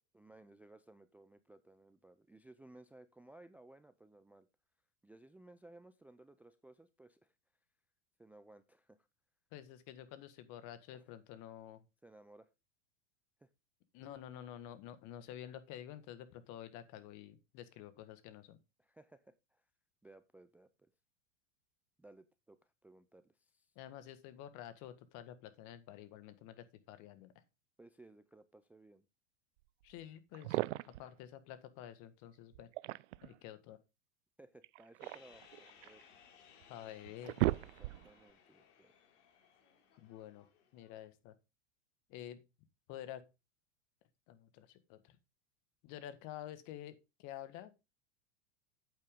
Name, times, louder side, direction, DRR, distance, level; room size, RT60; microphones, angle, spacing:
voice 1, 0.1-4.5 5.0-7.3 8.2-9.1 10.9-11.0 12.0-12.5 13.4-13.5 18.8-19.7 20.0-20.9 22.0-23.7 27.8-29.1 34.4-36.0 37.6-38.9, right 2 dB, 5° right, 12 dB, 0.4 m, -60 dB
voice 2, 9.5-11.8 13.9-18.6 23.7-27.3 29.8-30.6 30.9-32.7 33.2-33.8 36.7-37.4 40.0-40.4 40.7-41.3 42.1-42.4 42.9-43.2 44.3-45.2 45.8-47.7, left 11 dB, 50° left, 11 dB, 1.6 m, -49 dB
sound 1, 29.9-30.0 30.3-31.1 32.5-33.4 34.6-36.0 36.6-36.7 37.0-38.2, right 18 dB, 70° right, 0.5 m, -37 dB
sound 2, 35.0-41.1, left 7 dB, 70° left, 3.3 m, -63 dB
8.6 x 8.4 x 3.6 m, 0.26 s
hypercardioid pair, 105°, 38 cm